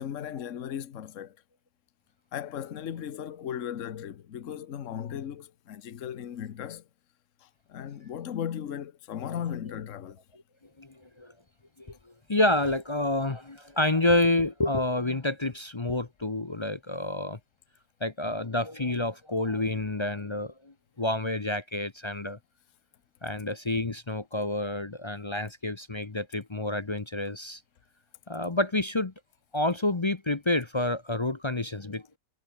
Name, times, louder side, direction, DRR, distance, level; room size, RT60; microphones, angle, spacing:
voice 1, 0.0-1.4 2.3-6.8 7.4-10.2, left 9 dB, 60° left, 1.3 m, -36 dB
voice 2, 10.8-11.3 11.8-12.0 12.3-17.4 18.0-22.4 23.2-27.6 28.3-29.1 29.5-32.0, left 2 dB, 25° left, 0.7 m, -28 dB
omnidirectional pair, 1.5 m